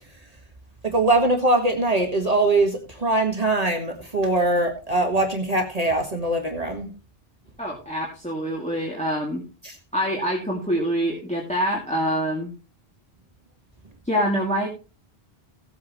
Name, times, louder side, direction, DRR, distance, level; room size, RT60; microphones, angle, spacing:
voice 1, 0.8-6.9 9.6-9.7, right 2 dB, 40° right, 3 dB, 1.8 m, -22 dB
voice 2, 7.6-9.4 9.9-12.5 14.1-14.7, equal, 5° left, -3 dB, 2.5 m, -25 dB
16.5 x 8.5 x 3.1 m, 0.33 s
omnidirectional pair, 1.0 m